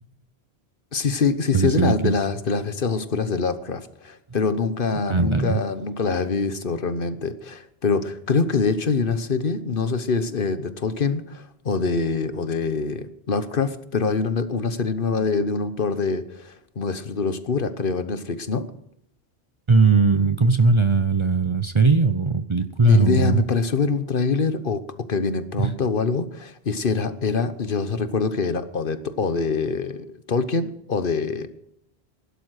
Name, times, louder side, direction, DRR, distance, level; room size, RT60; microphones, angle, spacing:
voice 1, 0.9-18.6 22.8-31.5, left 4 dB, 55° left, 11 dB, 1.2 m, -24 dB
voice 2, 1.5-2.1 5.1-5.6 19.7-23.4 25.6-25.7, right 4 dB, 35° right, 11 dB, 0.7 m, -19 dB
16.5 x 12.0 x 6.5 m, 0.77 s
omnidirectional pair, 1.1 m